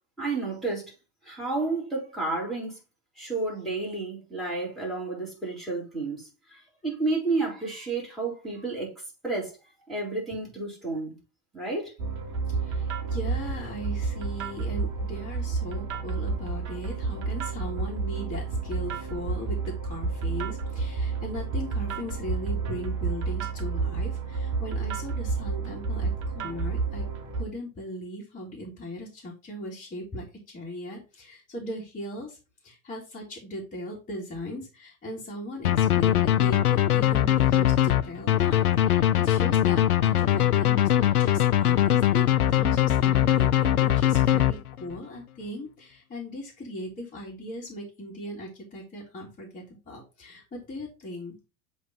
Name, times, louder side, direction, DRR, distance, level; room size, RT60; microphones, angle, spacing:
voice 1, 0.2-0.9 1.2-2.8 3.2-9.6 9.9-11.2 11.5-12.0, right 3 dB, ahead, 3.6 m, -31 dB
sound 1, 12.0-27.4, right 4 dB, 45° right, 1.4 m, -30 dB
voice 2, 12.6-27.0 27.3-32.4 32.6-51.4, equal, 20° left, 2.0 m, -38 dB
sound 2, 35.6-45.0, left 12 dB, 85° left, 0.6 m, -21 dB
7.7 x 3.2 x 4.1 m
figure-of-eight pair, 80°, 43 cm